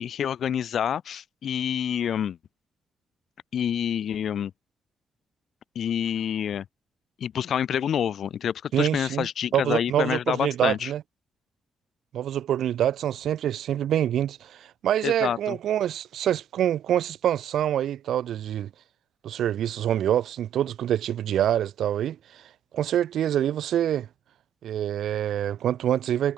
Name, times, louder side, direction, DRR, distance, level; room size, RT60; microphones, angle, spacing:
voice 1, 0.0-2.4 3.5-4.5 5.7-6.6 7.2-10.9 15.0-15.6, left 9 dB, 55° left, 4.7 m, -27 dB
voice 2, 8.7-9.3 9.5-11.0 12.1-18.7 19.2-22.4 22.7-24.1 24.6-26.3, right 11 dB, 75° right, 5.4 m, -26 dB
wide cardioid pair, 180°, 0 cm